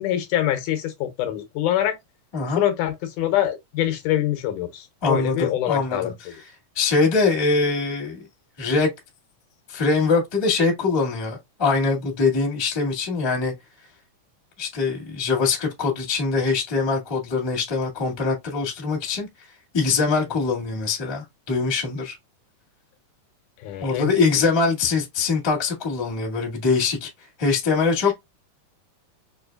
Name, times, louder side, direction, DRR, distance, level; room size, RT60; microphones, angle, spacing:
voice 1, 0.0-2.0 2.6-6.1 23.6-24.1, left 12 dB, 75° left, 2.0 m, -24 dB
voice 2, 5.0-6.4 6.7-8.2 8.6-8.9 9.7-13.5 14.6-19.3 19.7-22.1 23.8-27.1 27.4-28.1, left 4 dB, 25° left, 0.6 m, -23 dB
6.2 x 3.1 x 2.3 m
omnidirectional pair, 3.9 m